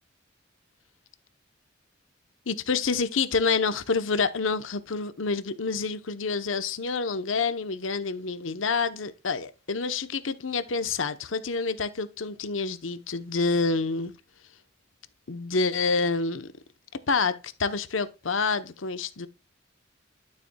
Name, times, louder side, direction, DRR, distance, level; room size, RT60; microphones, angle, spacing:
voice 1, 2.5-14.1 15.3-16.5 17.1-19.3, left 4 dB, 85° left, 0.9 m, -28 dB
12.5 x 6.8 x 2.3 m
head